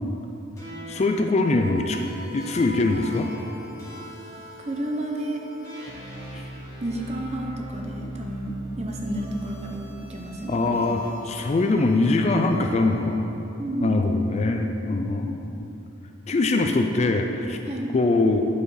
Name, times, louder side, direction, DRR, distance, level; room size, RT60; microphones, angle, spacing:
sound 1, 0.6-13.1, right 1 dB, 15° left, 1.5 m, -40 dB
voice 1, 0.9-2.0 2.3-3.3 6.3-6.4 10.5-13.3 13.8-15.7 16.3-17.6 17.9-18.5, left 2 dB, 30° left, 4 dB, 0.3 m, -22 dB
voice 2, 4.6-5.4 6.8-10.8 11.4-11.5 13.6-14.0 17.7-17.9, right 1 dB, 30° right, 1 dB, 0.7 m, -31 dB
8.8 x 4.9 x 4.8 m, 2.9 s
head